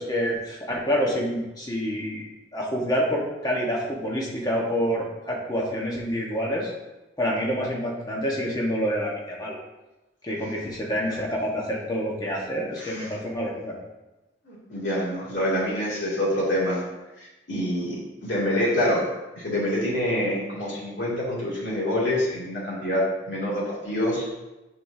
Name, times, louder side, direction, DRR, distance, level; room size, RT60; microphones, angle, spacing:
voice 1, 0.0-6.7 7.2-9.6 10.2-13.7, equal, 20° left, -3 dB, 1.3 m, -27 dB
voice 2, 12.8-13.1 14.4-16.8 17.5-19.0 19.4-24.3, left 1 dB, 80° left, -6 dB, 2.6 m, -26 dB
9.1 x 5.4 x 2.8 m, 1.0 s
head